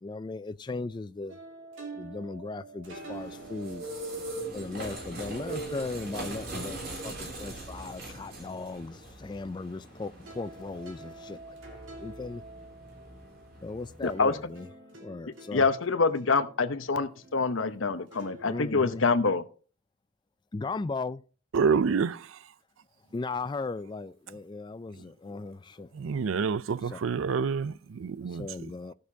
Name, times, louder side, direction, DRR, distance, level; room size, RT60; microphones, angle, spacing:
voice 1, 0.0-1.4 2.0-3.9 4.5-11.6 12.0-12.4 13.6-14.7 15.0-15.6 18.4-19.0 20.5-21.2 23.1-25.9 26.9-27.0 28.3-28.9, left 3 dB, 25° left, 0.3 m, -37 dB
sound 1, 1.3-9.9 10.2-18.7, right 3 dB, 75° right, 2.4 m, -49 dB
sound 2, 2.9-14.3, right 2 dB, 50° right, 3.1 m, -41 dB
voice 2, 14.0-14.4 15.5-19.5, left 4 dB, 80° left, 0.9 m, -26 dB
voice 3, 21.5-22.4 25.0-25.1 25.9-28.7, right 5 dB, 90° right, 0.4 m, -28 dB
16.0 x 6.5 x 2.8 m
head